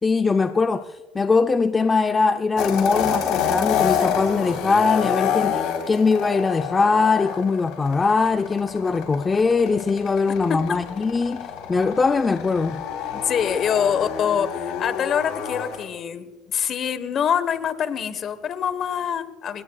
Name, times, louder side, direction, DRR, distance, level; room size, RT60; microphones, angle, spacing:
voice 1, 0.0-12.8, left 4 dB, 25° left, 0.6 m, -21 dB
sound 1, 2.6-15.8, left 8 dB, 70° left, 3.8 m, -28 dB
voice 2, 13.1-19.6, left 8 dB, 50° left, 1.2 m, -25 dB
29.5 x 17.5 x 2.4 m
supercardioid pair, 95°, 0 cm